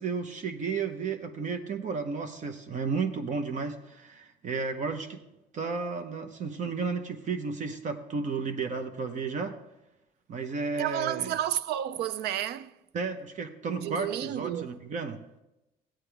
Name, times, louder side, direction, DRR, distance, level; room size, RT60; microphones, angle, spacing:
voice 1, 0.0-5.2 5.5-9.6 10.3-11.3 12.9-15.2, right 4 dB, 45° right, 0.9 m, -33 dB
voice 2, 10.8-12.7 13.8-14.8, right 11 dB, 75° right, 0.5 m, -31 dB
14.5 x 8.9 x 3.4 m
cardioid pair, 110°, 17 cm